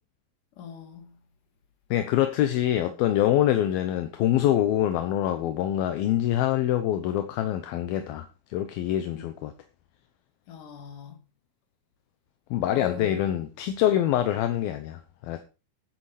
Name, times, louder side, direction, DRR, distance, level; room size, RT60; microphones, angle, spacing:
voice 1, 0.6-1.1 9.1-9.3 10.5-11.2 12.7-13.2, left 7 dB, 60° left, 3.5 m, -39 dB
voice 2, 1.9-9.5 12.5-15.4, left 12 dB, 75° left, 2.8 m, -25 dB
12.0 x 10.0 x 5.0 m
omnidirectional pair, 4.4 m